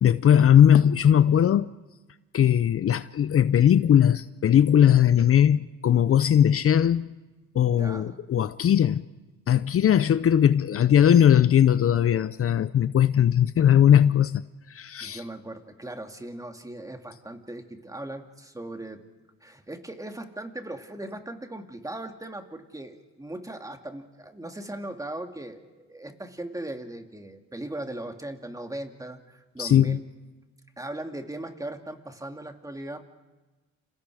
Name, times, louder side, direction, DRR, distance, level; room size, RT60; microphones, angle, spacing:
voice 1, 0.0-1.7 2.3-7.1 7.5-9.0 9.5-14.4 14.7-15.2 29.6-30.0, left 9 dB, 50° left, 0.7 m, -19 dB
voice 2, 7.7-8.1 15.0-19.0 19.4-30.0 30.8-33.0, right 1 dB, 10° right, 2.6 m, -38 dB
29.5 x 27.5 x 5.0 m
cardioid pair, 90°, 30 cm